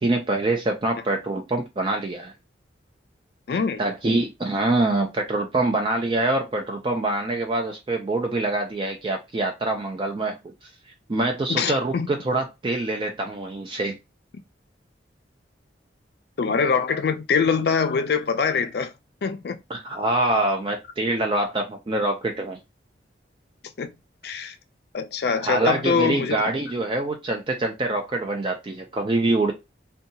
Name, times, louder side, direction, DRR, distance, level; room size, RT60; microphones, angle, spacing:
voice 1, 0.0-2.3 3.8-10.4 11.1-14.0 19.7-22.6 25.4-29.5, right 2 dB, 25° right, 0.3 m, -25 dB
voice 2, 3.5-3.8 11.5-12.1 16.4-18.9 19.2-19.6 23.8-23.9 24.2-24.5 24.9-26.4, left 5 dB, 55° left, 0.4 m, -23 dB
2.7 x 2.2 x 2.6 m
head